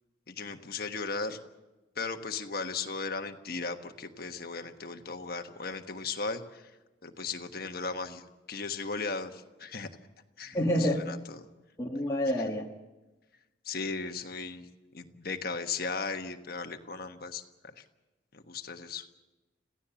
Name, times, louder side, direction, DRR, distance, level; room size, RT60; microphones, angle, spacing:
voice 1, 0.3-1.4 2.0-6.7 7.0-9.9 10.4-11.4 13.6-14.7 14.9-17.8 18.3-19.1, left 4 dB, 50° left, 6 dB, 1.3 m, -37 dB
voice 2, 10.5-11.2 11.8-12.7, equal, 15° left, -2 dB, 1.4 m, -28 dB
26.5 x 16.0 x 7.0 m, 1.1 s
head